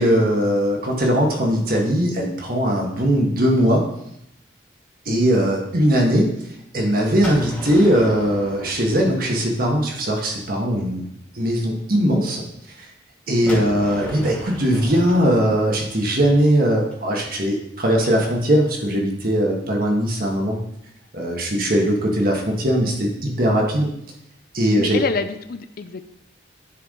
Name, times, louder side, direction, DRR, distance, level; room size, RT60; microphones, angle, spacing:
voice 1, 0.0-3.8 5.0-6.3 6.7-11.0 11.3-12.4 13.3-20.6 21.1-23.9 24.5-25.0, equal, 50° right, 0 dB, 1.6 m, -20 dB
Gunshot gunfire, 7.2-10.0 13.5-17.3, equal, 10° left, 2.1 m, -37 dB
voice 2, 13.4-13.9 24.8-26.0, left 4 dB, 50° left, 10 dB, 0.4 m, -28 dB
10.0 x 4.8 x 3.8 m, 0.78 s
head